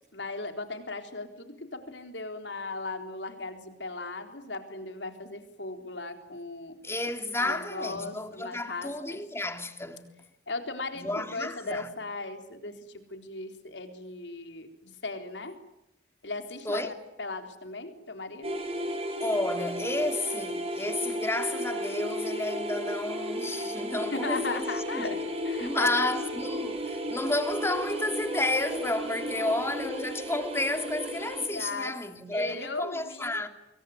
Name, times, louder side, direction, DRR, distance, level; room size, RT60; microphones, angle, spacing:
voice 1, 0.1-6.8 7.4-9.2 10.5-15.6 16.2-18.6 24.1-25.2 25.4-26.2 29.3-29.7 31.5-31.9 32.3-33.5, left 3 dB, 80° left, 3.9 m, -37 dB
voice 2, 6.8-10.1 11.0-11.9 16.6-16.9 19.2-24.6 24.9-25.1 25.6-33.5, left 2 dB, 15° left, 2.5 m, -31 dB
sound 1, 18.4-31.5, equal, 35° right, 5.8 m, -34 dB
26.5 x 23.0 x 9.5 m
head